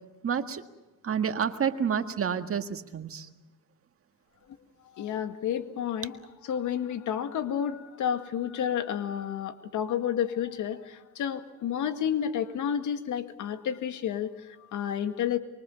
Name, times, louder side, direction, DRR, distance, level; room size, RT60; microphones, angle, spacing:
voice 1, 0.2-0.6 1.0-3.3, right 7 dB, 45° right, 8 dB, 1.8 m, -29 dB
voice 2, 4.9-15.4, left 9 dB, 80° left, 9 dB, 2.0 m, -31 dB
25.5 x 23.5 x 7.1 m, 1.1 s
cardioid pair, 90°, 30 cm